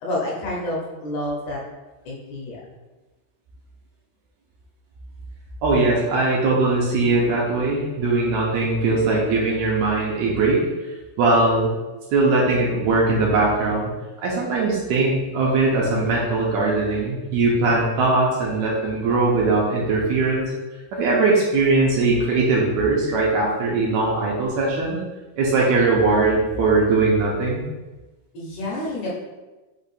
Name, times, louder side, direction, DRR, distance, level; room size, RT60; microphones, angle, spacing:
voice 1, 0.0-1.6 2.1-2.6 28.3-29.1, left 1 dB, 70° left, -4 dB, 2.3 m, -28 dB
voice 2, 5.6-10.6 11.2-11.7 12.1-13.9 14.2-20.5 20.9-25.0 25.4-27.6, right 3 dB, 75° right, -4 dB, 1.8 m, -20 dB
5.4 x 2.5 x 4.1 m, 1.1 s
omnidirectional pair, 3.7 m